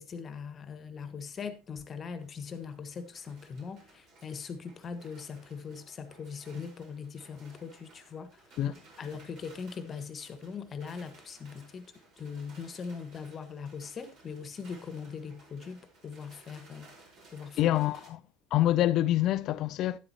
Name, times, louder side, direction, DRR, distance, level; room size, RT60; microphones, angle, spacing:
voice 1, 0.0-8.3 9.0-11.8 12.2-16.9 17.3-17.7, left 6 dB, 30° left, 1.5 m, -41 dB
sound 1, 1.5-18.1, right 2 dB, 50° right, 4.6 m, -58 dB
voice 2, 17.6-18.2 18.5-20.0, left 13 dB, 45° left, 0.5 m, -26 dB
12.5 x 10.5 x 2.9 m
figure-of-eight pair, 75°, 0 cm